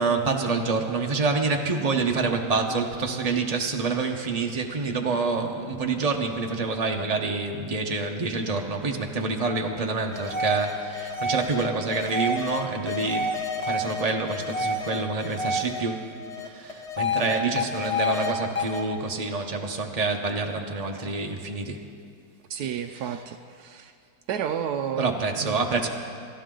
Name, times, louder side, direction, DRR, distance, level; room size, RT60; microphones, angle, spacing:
voice 1, 0.0-13.4 13.6-16.1 16.4-21.8 25.0-25.9, right 4 dB, 50° right, 2 dB, 0.4 m, -27 dB
sound 1, 10.1-15.8 16.2-18.3 18.6-18.8, left 2 dB, 25° left, 0.9 m, -29 dB
voice 2, 22.5-23.9 24.3-25.6, right 8 dB, 80° right, 7 dB, 0.8 m, -31 dB
28.5 x 12.5 x 3.8 m, 2.3 s
omnidirectional pair, 2.3 m